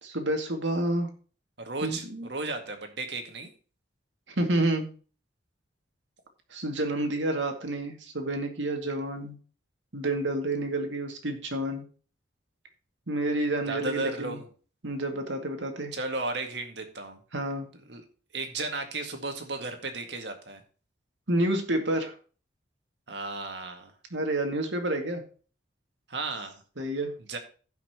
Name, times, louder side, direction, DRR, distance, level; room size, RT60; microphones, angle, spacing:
voice 1, 0.0-1.1 1.8-2.3 4.4-4.9 6.5-9.4 9.9-11.8 13.1-14.4 14.8-15.9 17.3-17.7 21.3-22.1 24.1-25.2 26.8-27.4, right 1 dB, 80° right, 4 dB, 2.3 m, -29 dB
voice 2, 1.6-2.0 2.3-3.5 13.7-14.5 15.9-17.2 17.9-18.0 18.3-20.6 23.1-23.9 26.1-26.6 27.3-27.4, right 3 dB, 65° right, 5 dB, 2.0 m, -34 dB
16.0 x 5.9 x 3.0 m, 0.38 s
head